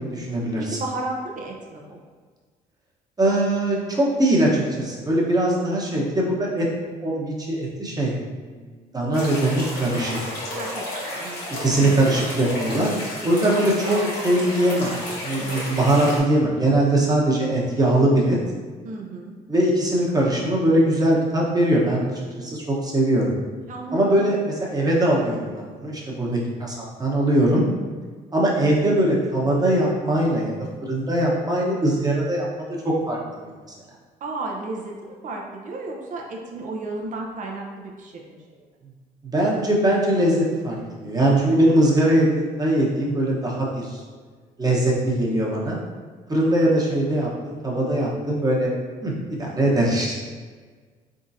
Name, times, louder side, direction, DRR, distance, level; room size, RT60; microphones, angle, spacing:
voice 1, 0.0-0.8 3.2-6.7 7.0-8.1 8.9-10.2 11.6-14.0 14.2-14.9 15.2-18.4 19.5-23.2 23.9-27.6 28.3-30.5 30.8-33.5 39.2-40.8 41.0-44.0 44.6-45.8 46.3-48.7 49.0-50.2, right 1 dB, 25° right, -3 dB, 1.1 m, -21 dB
voice 2, 0.6-2.0 10.6-12.1 13.3-13.5 13.8-14.1 15.4-15.7 18.8-19.3 23.7-24.3 28.6-28.8 34.2-38.6, right 2 dB, 50° right, -1 dB, 0.7 m, -34 dB
sound 1, 9.1-16.2, left 1 dB, 65° left, 1.3 m, -32 dB
3.7 x 3.7 x 2.7 m, 1.5 s
supercardioid pair, 75°, 17 cm